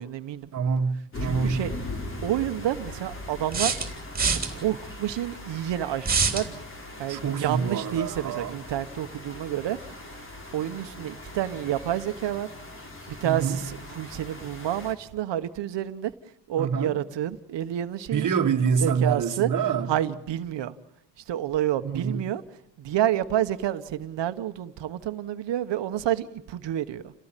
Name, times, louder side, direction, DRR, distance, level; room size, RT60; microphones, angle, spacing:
voice 1, 0.0-0.5 1.2-1.7 2.2-3.7 4.5-6.6 7.0-9.8 10.5-12.5 13.2-16.1 16.5-18.3 18.8-19.5 19.9-20.7 21.3-22.4 22.8-27.1, right 12 dB, 75° right, 1.3 m, -29 dB
voice 2, 0.5-1.6 7.1-8.6 13.2-13.6 16.6-16.9 18.1-19.9 21.8-22.3, right 6 dB, 45° right, 1.9 m, -26 dB
sound 1, 1.1-14.9, left 1 dB, 30° left, 3.9 m, -40 dB
sound 2, 3.5-4.5 6.0-6.5, right 5 dB, 20° right, 3.4 m, -24 dB
29.0 x 17.5 x 9.1 m
cardioid pair, 170°, 43 cm